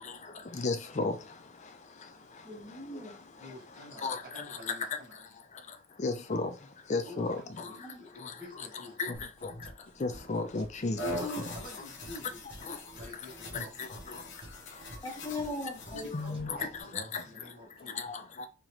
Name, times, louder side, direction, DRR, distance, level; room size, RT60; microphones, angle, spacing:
voice 1, 0.5-1.2 4.0-4.2 6.0-6.5 6.9-7.4 9.0-9.1 9.4-9.5 10.0-11.0 12.7-12.8 13.5-13.6 16.1-16.7 16.9-17.2 18.0-18.5, left 3 dB, 35° left, 0.5 m, -32 dB
voice 2, 2.4-3.1 6.9-7.0 7.7-8.0 10.8-11.4 15.0-16.5, left 2 dB, 15° left, 1.1 m, -40 dB
voice 3, 3.4-5.2 7.0-9.2 11.1-11.3 11.5-13.8 15.9-17.0 17.2-18.1, left 1 dB, 40° right, 1.8 m, -49 dB
sound 1, 9.1-16.8, right 1 dB, 25° right, 1.0 m, -51 dB
sound 2, 11.0-16.4, left 1 dB, 55° left, 0.8 m, -42 dB
3.8 x 3.0 x 3.0 m
head